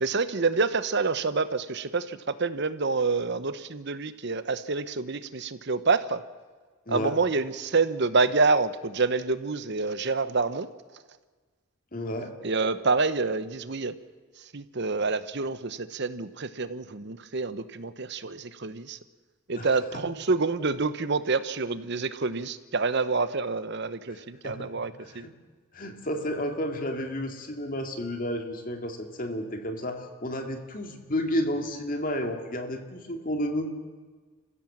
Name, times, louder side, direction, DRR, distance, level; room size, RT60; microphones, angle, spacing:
voice 1, 0.0-6.2 6.9-10.7 12.4-13.9 14.5-19.0 19.5-25.3, right 4 dB, 55° right, 13 dB, 0.9 m, -27 dB
voice 2, 11.9-12.3 19.6-19.8 24.1-24.7 25.0-25.3 25.7-33.7, equal, 40° left, 4 dB, 2.2 m, -32 dB
28.5 x 15.5 x 7.4 m, 1.4 s
head